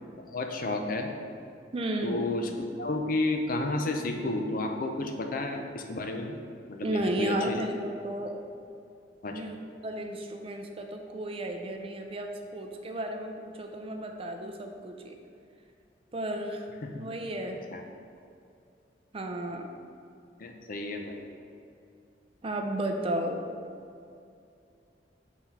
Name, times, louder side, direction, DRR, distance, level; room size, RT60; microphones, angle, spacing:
voice 1, 0.3-1.1 2.0-6.4 6.7-7.6 9.2-9.4 16.8-16.9 17.7-17.8 20.4-21.2, left 2 dB, 50° left, 4 dB, 0.5 m, -31 dB
voice 2, 1.7-2.3 6.8-8.4 9.3-9.6 9.8-15.2 16.1-16.7 17.0-17.6 19.1-19.7 22.4-23.4, right 1 dB, 30° right, 4 dB, 0.5 m, -33 dB
5.8 x 4.1 x 4.5 m, 2.5 s
head